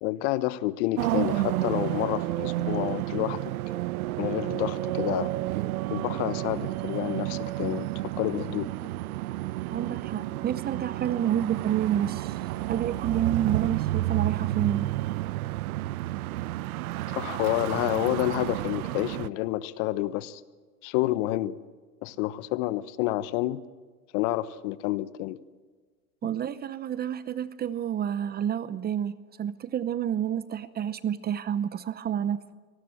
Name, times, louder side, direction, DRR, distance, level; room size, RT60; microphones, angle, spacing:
voice 1, 0.0-3.4 4.2-5.3 5.9-7.9 8.2-8.7 17.1-20.4 20.8-21.6 22.0-23.6 24.1-25.4, left 16 dB, 50° left, 1.2 m, -29 dB
sound 1, 1.0-19.3, right 16 dB, 70° right, 0.8 m, -31 dB
voice 2, 9.7-12.4 12.7-14.9 26.2-32.5, right 10 dB, 20° right, 0.7 m, -29 dB
25.0 x 19.5 x 7.8 m
hypercardioid pair, 115°, 45 cm